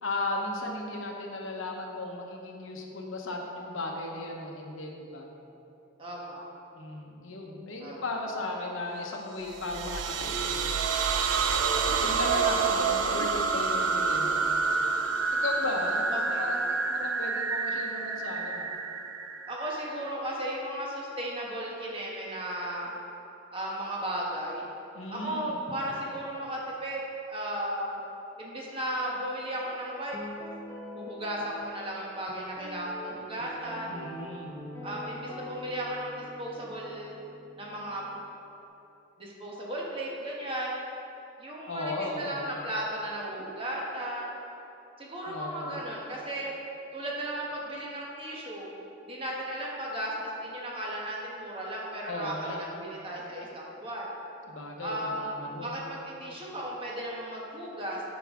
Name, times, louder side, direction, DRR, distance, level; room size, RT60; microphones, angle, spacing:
voice 1, 0.0-5.3 6.7-10.8 12.0-14.8 15.3-16.6 16.9-18.7 24.9-25.6 33.9-34.6 41.7-42.5 45.3-45.8 52.1-52.7 54.5-55.8, left 2 dB, 80° left, 1 dB, 0.9 m, -36 dB
voice 2, 6.0-6.4 7.8-8.0 16.1-16.7 19.5-22.9 23.5-24.6 25.1-27.0 27.3-28.0 28.4-30.2 30.9-34.0 34.8-37.1 37.6-38.0 39.2-40.8 41.4-44.3 45.0-46.5 46.9-48.7 49.0-54.1 54.8-55.3 55.6-58.0, right 1 dB, 25° right, -4 dB, 1.2 m, -35 dB
sound 1, 9.5-20.1, right 4 dB, 70° right, 0.4 m, -28 dB
Guitar, 30.1-38.3, equal, 10° left, 0.9 m, -44 dB
9.2 x 5.2 x 3.7 m, 2.9 s
head